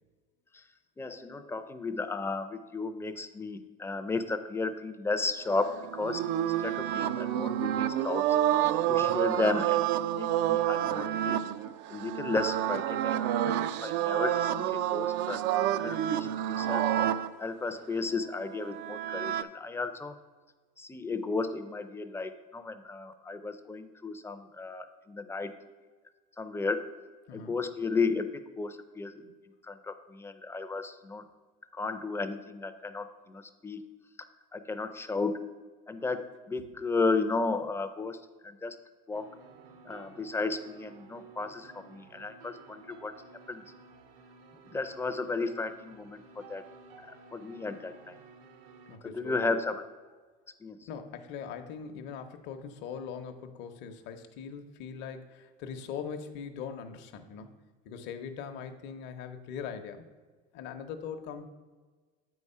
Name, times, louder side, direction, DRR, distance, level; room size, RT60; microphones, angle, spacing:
voice 1, 1.0-6.2 6.6-8.3 8.9-9.8 10.2-11.5 11.9-15.4 15.8-16.9 17.4-20.2 20.8-25.5 26.4-26.9 27.3-29.3 29.6-31.2 31.7-33.8 34.5-35.4 35.9-38.8 39.1-39.3 39.9-43.1 43.5-43.6 44.7-46.6 47.1-48.2 49.0-49.8 50.6-50.8, left 3 dB, 10° left, 10 dB, 0.5 m, -34 dB
sound 1, 5.5-17.3 18.4-19.4, right 11 dB, 60° right, 0.4 m, -29 dB
sound 2, 39.1-49.0, right 5 dB, 75° right, 0.9 m, -54 dB
voice 2, 48.9-49.5 50.9-60.1 60.5-61.4, left 7 dB, 60° left, 6 dB, 0.8 m, -41 dB
8.1 x 4.8 x 5.4 m, 1.4 s
supercardioid pair, 125°, 21 cm